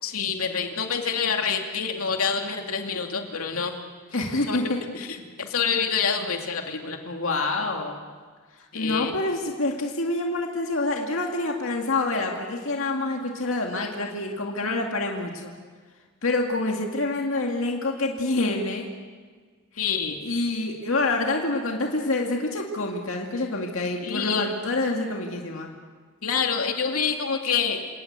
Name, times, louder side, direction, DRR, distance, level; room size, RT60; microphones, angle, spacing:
voice 1, 0.0-3.7 4.5-4.6 4.9-7.0 8.7-9.2 19.8-20.2 24.0-24.5 26.2-27.8, left 6 dB, 85° left, 3 dB, 2.6 m, -27 dB
voice 2, 4.1-4.8 7.1-8.0 8.7-15.5 16.2-18.9 19.7-19.9 20.2-25.7, left 2 dB, 70° left, 1 dB, 2.2 m, -27 dB
28.0 x 18.5 x 8.2 m, 1.5 s
head